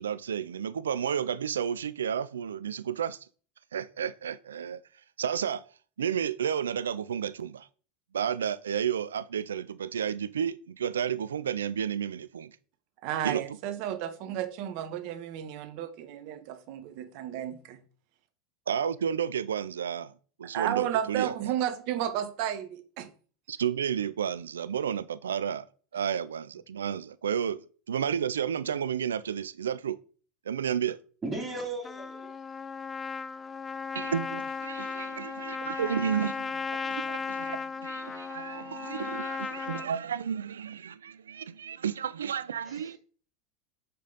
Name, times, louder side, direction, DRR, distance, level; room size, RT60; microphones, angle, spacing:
voice 1, 0.0-3.3 3.7-4.8 5.2-5.6 6.0-7.7 8.1-12.6 13.2-13.4 18.7-20.1 20.4-21.3 23.5-25.7 25.9-30.0 30.5-31.0 33.9-43.0, right 8 dB, 85° right, 0.3 m, -32 dB
voice 2, 13.0-17.8 20.5-23.1, right 11 dB, 60° right, 1.1 m, -32 dB
voice 3, 31.2-32.3 42.6-42.9, right 2 dB, 20° right, 2.5 m, -36 dB
Trumpet, 31.8-39.9, left 5 dB, 20° left, 0.3 m, -36 dB
6.5 x 5.2 x 3.9 m
hypercardioid pair, 95°, 0 cm